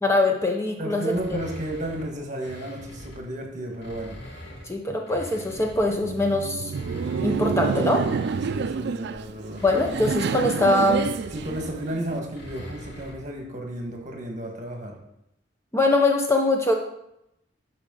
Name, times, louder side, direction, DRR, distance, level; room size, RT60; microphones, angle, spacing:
voice 1, 0.0-1.1 4.7-6.7 7.2-8.0 9.6-11.0 15.7-16.7, left 2 dB, 15° left, 2 dB, 0.7 m, -22 dB
voice 2, 0.8-4.2 8.4-9.6 11.3-15.0, right 1 dB, 40° right, 2 dB, 1.6 m, -33 dB
sound 1, 1.1-3.3 3.7-6.1 6.6-13.3, equal, 60° left, 2.8 m, -43 dB
Laughter, 5.9-12.2, right 5 dB, 60° right, 0.3 m, -28 dB
11.5 x 4.8 x 3.8 m, 0.82 s
head